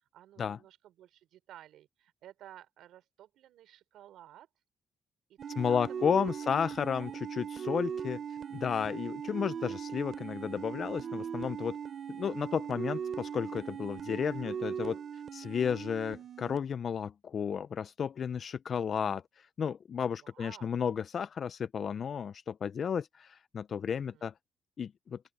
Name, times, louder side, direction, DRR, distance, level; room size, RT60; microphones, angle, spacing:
voice 1, 0.1-4.5 5.3-6.3 6.6-7.1 20.2-20.7 23.9-24.3, right 12 dB, 80° right, 4.8 m, -54 dB
sound 1, 5.4-16.6, right 7 dB, 50° right, 2.6 m, -39 dB
voice 2, 5.6-8.2 8.5-11.8 12.1-15.0 15.3-24.3 24.8-25.2, left 7 dB, 50° left, 0.4 m, -33 dB
open air
cardioid pair, 90°, 0 cm